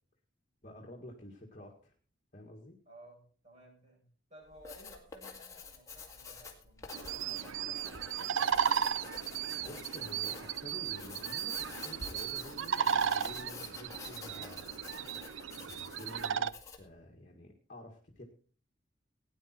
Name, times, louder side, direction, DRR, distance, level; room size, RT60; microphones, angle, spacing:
voice 1, 0.6-1.9 2.3-2.8 9.6-14.7 15.6-18.2, left 1 dB, 40° left, 1 dB, 1.9 m, -50 dB
voice 2, 2.9-4.0 4.3-8.1, right 1 dB, 40° right, -3 dB, 7.9 m, -57 dB
Writing, 4.5-16.9, left 5 dB, 15° left, 2.2 m, -49 dB
sound 1, 6.9-16.5, right 7 dB, 80° right, 0.5 m, -35 dB
17.5 x 9.9 x 4.5 m, 0.43 s
head